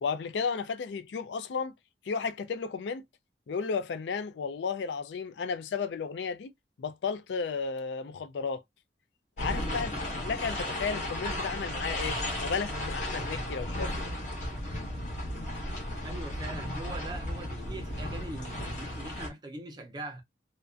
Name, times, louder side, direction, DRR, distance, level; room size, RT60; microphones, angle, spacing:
voice 1, 0.0-1.7 2.1-3.0 3.5-6.5 6.8-8.6 9.4-14.1, left 5 dB, 85° left, 0.4 m, -33 dB
sound 1, 9.4-19.3, left 1 dB, 45° left, 0.9 m, -34 dB
voice 2, 15.9-20.2, right 2 dB, 25° right, 0.5 m, -42 dB
2.4 x 2.1 x 2.4 m
head